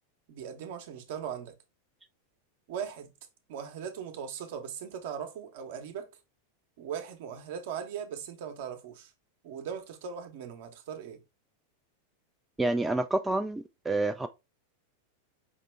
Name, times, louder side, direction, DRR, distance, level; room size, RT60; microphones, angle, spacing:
voice 1, 0.3-1.5 2.7-3.1 3.5-6.1 6.8-9.1 9.4-11.2, right 8 dB, 50° right, 0.9 m, -39 dB
voice 2, 12.6-14.3, right 2 dB, 10° right, 0.3 m, -28 dB
5.3 x 2.9 x 3.2 m
figure-of-eight pair, 90°, 0 cm